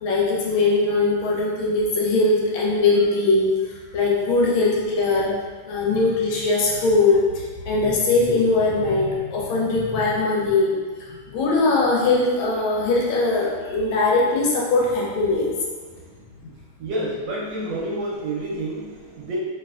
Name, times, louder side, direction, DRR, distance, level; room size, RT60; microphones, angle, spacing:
voice 1, 0.0-3.5 3.9-5.4 5.7-10.7 11.3-15.5, left 3 dB, 80° left, -3 dB, 1.3 m, -20 dB
voice 2, 16.8-19.4, right 1 dB, 70° right, -5 dB, 1.2 m, -29 dB
3.2 x 2.7 x 2.3 m, 1.5 s
omnidirectional pair, 2.3 m